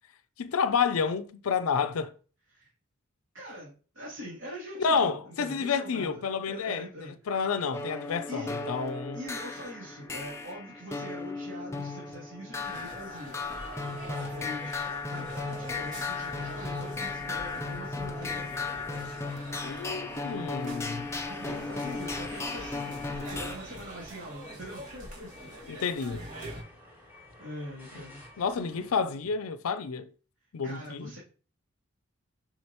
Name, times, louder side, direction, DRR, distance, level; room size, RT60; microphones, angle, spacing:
voice 1, 0.4-2.1 4.8-6.9 7.3-9.2 19.6-21.1 25.7-26.2 28.4-30.1 30.5-31.1, left 5 dB, 85° left, 0.5 m, -29 dB
voice 2, 3.3-7.3 8.3-8.6 9.1-18.6 21.3-25.3 27.4-28.2 30.6-31.2, equal, 60° right, 2.8 m, -43 dB
sound 1, 7.7-23.6, left 3 dB, 15° left, 0.6 m, -36 dB
sound 2, 12.6-26.6, right 1 dB, 35° right, 2.4 m, -45 dB
sound 3, 21.0-28.9, left 2 dB, 10° right, 3.1 m, -52 dB
6.3 x 6.1 x 2.9 m
head